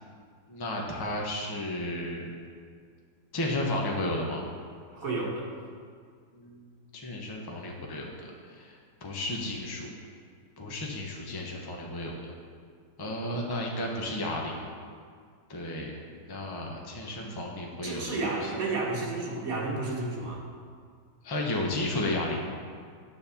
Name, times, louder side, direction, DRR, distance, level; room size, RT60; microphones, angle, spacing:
voice 1, 0.5-2.3 3.3-4.4 6.3-8.3 8.6-8.7 9.0-9.9 10.6-12.3 13.0-14.7 15.5-16.0 16.3-18.2 21.2-22.5, left 1 dB, 20° left, -1 dB, 0.7 m, -33 dB
voice 2, 4.9-5.5 17.2-17.3 17.8-20.4, right 3 dB, 50° right, -2 dB, 1.7 m, -31 dB
9.4 x 4.3 x 7.1 m, 2.1 s
omnidirectional pair, 2.0 m